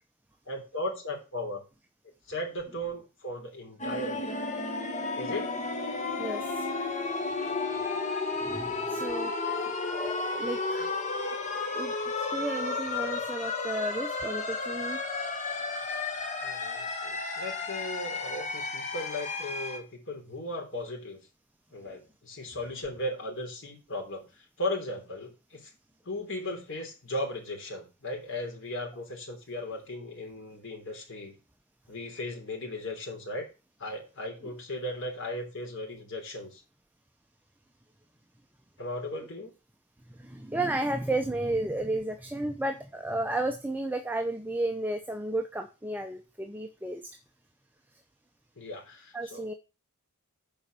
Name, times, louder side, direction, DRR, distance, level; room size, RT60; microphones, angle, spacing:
voice 1, 0.5-1.6 2.3-4.4 5.2-5.5 7.6-7.8 16.4-21.2 21.7-24.3 24.6-25.7 26.0-31.3 31.9-33.5 33.8-36.6 38.8-39.5 48.6-49.4, left 1 dB, 60° left, 1 dB, 3.2 m, -37 dB
sound 1, 3.8-19.8, left 3 dB, 35° left, 1.6 m, -33 dB
voice 2, 6.2-6.7 8.4-9.3 9.9-10.9 11.7-15.0 40.1-47.0 49.1-49.5, right 1 dB, 10° right, 5 dB, 0.7 m, -33 dB
7.2 x 5.3 x 6.8 m, 0.30 s
head